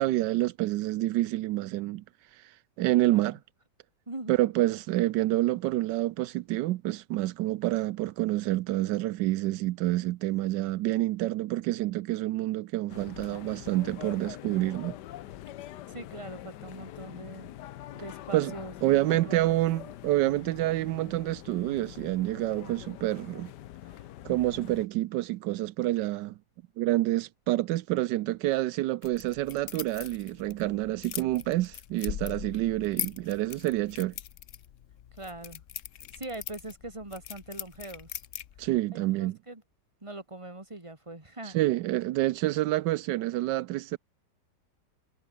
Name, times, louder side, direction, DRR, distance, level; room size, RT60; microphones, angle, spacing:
voice 1, 0.0-2.0 2.3-3.4 4.3-14.9 18.3-18.5 18.8-23.5 24.2-26.3 26.8-34.1 38.6-39.4 41.5-44.0, right 16 dB, 85° right, 1.2 m, -28 dB
voice 2, 3.0-3.4 4.1-4.4 15.9-17.5 17.9-19.6 35.2-35.6 36.1-38.2 38.9-39.6 40.0-41.6, right 2 dB, 15° right, 3.1 m, -42 dB
sound 1, 12.9-24.9, left 13 dB, 75° left, 1.4 m, -44 dB
sound 2, 29.0-38.8, left 10 dB, 55° left, 1.0 m, -41 dB
omnidirectional pair, 1.9 m